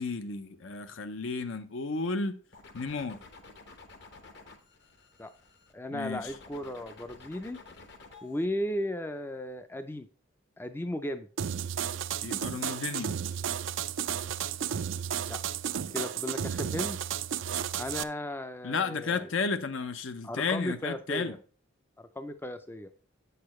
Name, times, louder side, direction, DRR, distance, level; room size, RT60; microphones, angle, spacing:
voice 1, 0.0-2.4 2.7-3.2 5.9-6.3 12.2-13.1 18.6-21.4, left 4 dB, 70° left, 0.7 m, -33 dB
sound 1, 2.5-5.7 6.1-8.5, left 3 dB, 55° left, 1.0 m, -52 dB
voice 2, 5.7-7.6 8.2-10.1 10.6-11.3 15.2-15.4 15.9-17.0 17.8-19.3 20.2-21.4 22.0-22.9, left 1 dB, 10° left, 0.4 m, -35 dB
sound 2, 11.4-18.0, right 8 dB, 65° right, 0.4 m, -33 dB
8.5 x 6.8 x 3.1 m
head